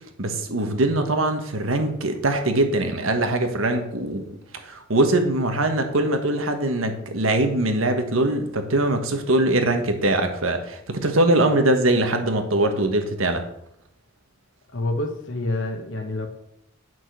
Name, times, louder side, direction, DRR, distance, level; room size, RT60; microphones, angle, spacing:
voice 1, 0.2-4.2 4.6-13.4, right 1 dB, 90° right, 6 dB, 1.4 m, -22 dB
voice 2, 14.7-16.3, left 2 dB, 65° left, 3 dB, 1.1 m, -27 dB
9.1 x 6.2 x 6.1 m, 0.78 s
head